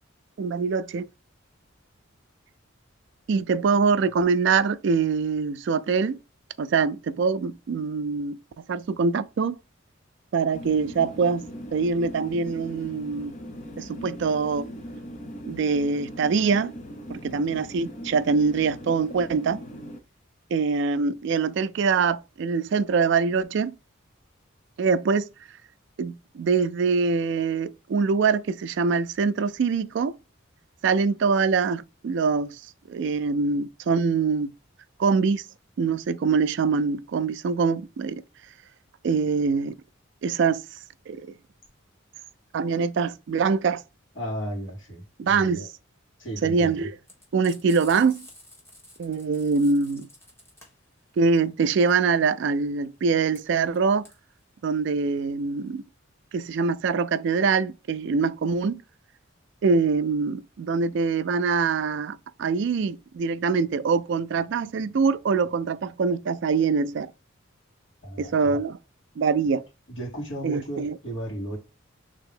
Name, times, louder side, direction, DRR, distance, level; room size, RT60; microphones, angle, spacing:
voice 1, 0.4-1.1 3.3-6.2 6.6-8.4 8.7-9.6 10.3-11.4 11.7-13.3 13.8-14.7 15.5-16.7 17.1-19.6 20.5-23.8 24.8-25.3 26.0-30.2 30.8-32.6 32.9-34.5 35.0-35.4 35.8-38.2 39.0-39.8 40.2-40.6 41.1-41.3 42.5-43.8 45.2-45.6 46.4-46.9 47.3-48.3 49.0-50.1 51.2-54.1 54.6-55.8 56.3-58.8 59.6-67.1 68.2-68.8 69.2-69.6 70.4-71.0, right 5 dB, 60° right, 0.3 m, -24 dB
sound 1, 10.5-20.0, equal, 35° left, 0.6 m, -39 dB
voice 2, 44.2-45.7 46.2-46.9 68.0-68.6 69.9-71.6, right 1 dB, 65° left, 2.3 m, -34 dB
Frying (food), 47.0-55.8, left 1 dB, 10° left, 1.2 m, -50 dB
3.4 x 2.8 x 3.7 m
head